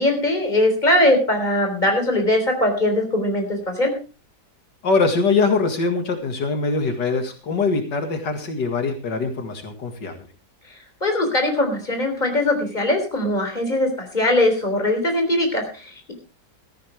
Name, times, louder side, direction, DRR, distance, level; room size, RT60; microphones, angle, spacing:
voice 1, 0.0-3.9 11.0-16.1, left 1 dB, 25° left, 4 dB, 3.8 m, -21 dB
voice 2, 4.8-10.2, left 4 dB, 85° left, 5 dB, 2.6 m, -22 dB
17.0 x 14.0 x 3.4 m, 0.34 s
omnidirectional pair, 1.8 m